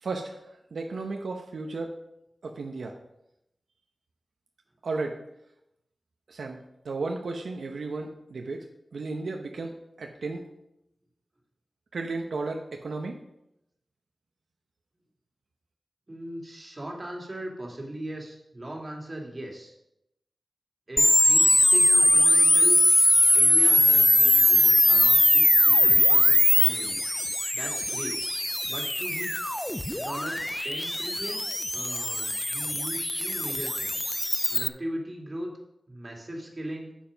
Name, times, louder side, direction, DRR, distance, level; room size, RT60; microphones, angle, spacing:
voice 1, 0.0-0.4 0.7-1.9 2.4-3.0 4.8-5.2 6.3-6.6 6.8-8.6 8.9-9.7 10.0-10.4 11.9-13.2, right 3 dB, 85° right, 3 dB, 0.8 m, -33 dB
voice 2, 16.1-19.7 20.9-22.9 23.3-27.0 27.5-28.2 28.6-29.4 29.9-31.4 31.7-34.1 34.5-35.5 35.9-36.9, right 1 dB, 35° right, -1 dB, 2.4 m, -38 dB
sound 1, 21.0-34.7, left 1 dB, 15° left, 0.4 m, -21 dB
7.3 x 7.2 x 5.2 m, 0.83 s
wide cardioid pair, 60°, 0 cm